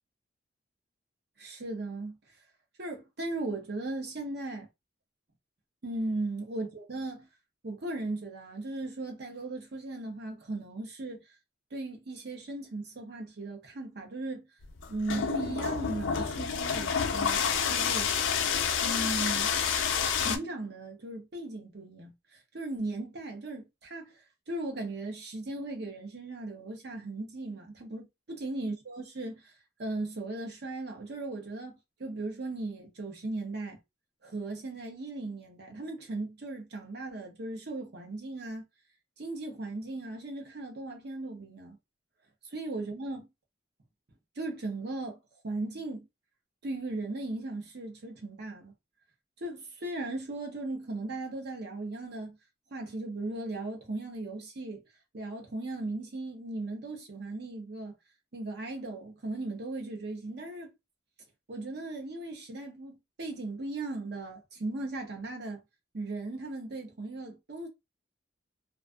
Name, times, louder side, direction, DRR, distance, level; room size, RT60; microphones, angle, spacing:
voice 1, 1.4-2.2 2.8-4.7 5.8-7.3 7.6-11.2 11.7-14.5 14.9-17.4 17.7-18.1 18.8-19.5 20.2-29.5 29.8-33.8 34.2-38.6 39.2-41.8 42.5-43.3 44.4-45.2 45.4-46.1 46.6-48.7 49.4-52.4 52.7-54.8 55.1-57.9 58.3-60.7 61.5-65.6 65.9-67.7, right 2 dB, 55° right, 0.7 m, -37 dB
sound 1, 14.6-20.4, left 7 dB, 75° left, 0.4 m, -29 dB
2.5 x 2.3 x 2.3 m
head